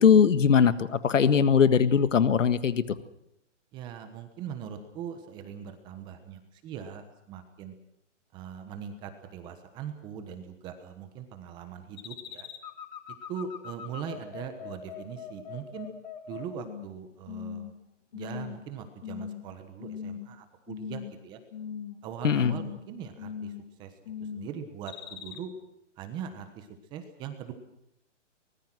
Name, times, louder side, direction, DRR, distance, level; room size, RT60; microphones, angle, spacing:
voice 1, 0.0-2.8 22.2-22.6, left 7 dB, 85° left, 13 dB, 1.7 m, -20 dB
voice 2, 3.7-7.7 8.3-12.5 13.3-15.9 16.3-17.7 18.1-21.4 22.0-23.5 23.8-23.9 24.2-25.5 26.0-27.5, right 8 dB, 10° right, 8 dB, 1.2 m, -41 dB
sound 1, 12.0-16.9 17.3-17.7 18.1-18.6 19.0-19.4 19.8-20.3 20.7-21.2 21.5-22.0 22.3-22.8 23.2-23.7 24.0-24.5 24.9-25.4, left 8 dB, 35° left, 2.2 m, -40 dB
24.0 x 21.0 x 6.2 m, 0.80 s
hypercardioid pair, 165°, 37 cm